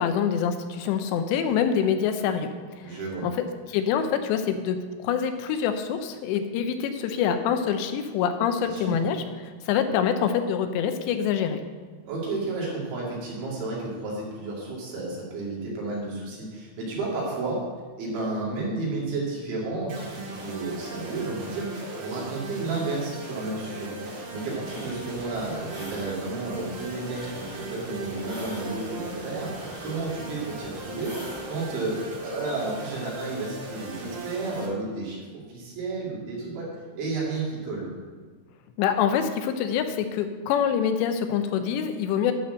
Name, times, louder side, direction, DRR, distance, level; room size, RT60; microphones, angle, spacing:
voice 1, 0.0-2.5 2.8-3.3 3.7-4.8 5.0-11.6 38.8-42.3, left 8 dB, 80° left, 8 dB, 2.8 m, -25 dB
voice 2, 2.8-3.3 8.6-9.0 12.1-17.6 18.0-31.2 31.5-35.2 35.5-36.7 37.0-37.9, right 3 dB, 80° right, -5 dB, 4.8 m, -32 dB
sound 1, 19.9-34.7, right 2 dB, 55° right, 2.5 m, -38 dB
sound 2, 24.6-31.5, equal, 30° right, 0.3 m, -44 dB
11.5 x 4.4 x 7.7 m, 1.5 s
omnidirectional pair, 5.2 m